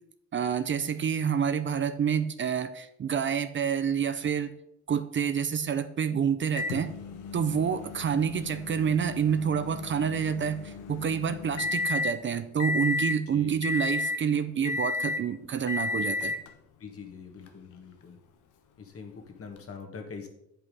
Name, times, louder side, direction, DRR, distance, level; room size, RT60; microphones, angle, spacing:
voice 1, 0.3-4.5 4.9-6.9 7.3-16.3, right 7 dB, 40° right, 11 dB, 0.6 m, -28 dB
Microwave oven, 6.6-12.2 12.6-13.2 13.6-14.2 14.6-15.3 15.7-16.5 17.5-17.6 19.6-19.7, left 3 dB, 85° left, 1.0 m, -33 dB
voice 2, 16.8-18.2 18.8-20.3, left 5 dB, 50° left, 3 dB, 1.8 m, -43 dB
8.2 x 5.6 x 5.4 m, 0.81 s
cardioid pair, 90°, 30 cm